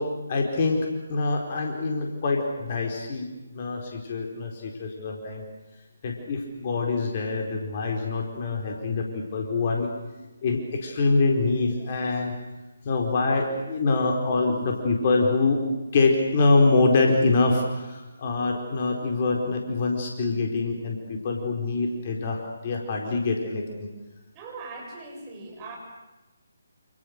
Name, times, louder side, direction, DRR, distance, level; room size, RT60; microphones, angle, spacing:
voice 1, 0.0-5.4 6.0-9.9 10.4-12.4 12.8-23.9, left 3 dB, 35° left, 2 dB, 4.4 m, -25 dB
voice 2, 24.3-25.8, right 3 dB, 20° right, -1 dB, 7.2 m, -40 dB
28.5 x 28.5 x 6.7 m, 1.1 s
figure-of-eight pair, 145°, 0 cm